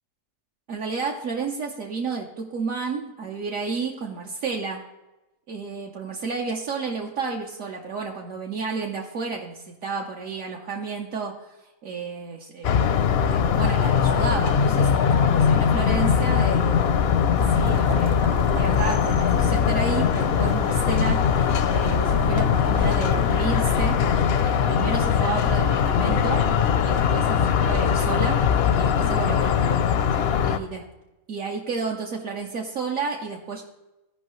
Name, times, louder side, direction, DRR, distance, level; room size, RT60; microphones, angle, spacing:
voice 1, 0.7-4.8 5.5-12.7 13.2-16.9 17.5-24.0 24.4-26.4 26.8-28.4 28.8-29.8 30.1-30.9 31.3-33.6, right 4 dB, 70° right, -1 dB, 1.2 m, -31 dB
sound 1, 12.6-30.6, left 7 dB, 65° left, 0.6 m, -21 dB
sound 2, 17.4-24.4, right 3 dB, 50° right, 0.7 m, -36 dB
15.5 x 5.4 x 3.1 m, 1.0 s
omnidirectional pair, 1.5 m